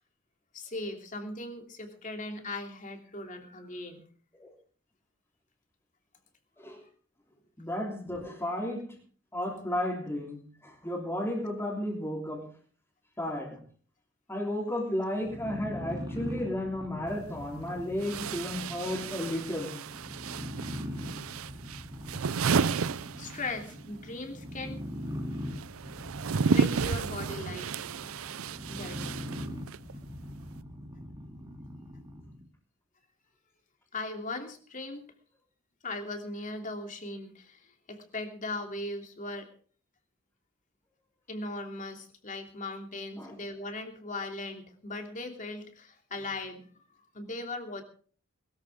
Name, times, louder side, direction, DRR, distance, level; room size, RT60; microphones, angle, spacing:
voice 1, 0.5-4.0 23.2-24.8 26.5-27.7 28.7-29.0 33.9-35.1 35.8-39.5 41.3-46.7 47.1-47.8, left 2 dB, 40° left, 4 dB, 2.9 m, -38 dB
voice 2, 7.6-9.0 9.3-12.5 13.2-13.6 14.3-19.8 43.2-43.4, left 1 dB, 10° left, -4 dB, 3.6 m, -33 dB
sound 1, 15.2-32.5, equal, 20° right, 2.7 m, -41 dB
sound 2, 17.1-17.2 18.0-23.8 24.1-29.9, right 5 dB, 80° right, 0.6 m, -32 dB
21.0 x 14.0 x 3.7 m, 0.43 s
head